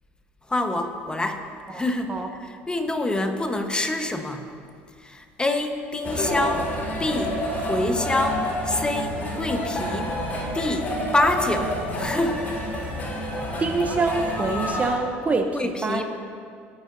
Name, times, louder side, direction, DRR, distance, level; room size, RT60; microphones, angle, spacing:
voice 1, 0.5-1.4 1.7-4.4 5.0-6.7 7.0-7.4 7.7-10.1 10.5-12.6 15.5-16.0, left 2 dB, 15° left, 6 dB, 1.1 m, -26 dB
sound 1, 6.0-14.9, left 1 dB, 30° left, 3.1 m, -28 dB
voice 2, 13.6-16.0, right 3 dB, 25° right, 5 dB, 0.8 m, -25 dB
19.5 x 9.2 x 2.7 m, 2.2 s
supercardioid pair, 80°, 6 cm